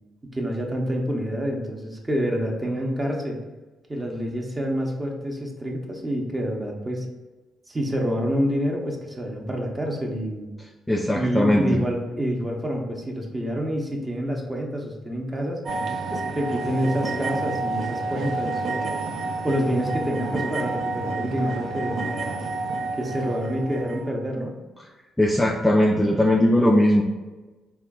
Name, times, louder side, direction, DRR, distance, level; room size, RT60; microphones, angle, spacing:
voice 1, 0.2-3.4 3.9-7.1 7.7-10.5 11.1-15.6 16.1-18.9 19.4-22.0 23.0-24.5, equal, 20° right, 1 dB, 0.7 m, -27 dB
voice 2, 10.9-11.8 25.2-27.0, left 1 dB, 10° left, 0 dB, 0.3 m, -19 dB
sound 1, 15.7-24.1, right 3 dB, 65° right, 0.5 m, -29 dB
3.7 x 2.2 x 3.5 m, 1.2 s
cardioid pair, 90°, 0 cm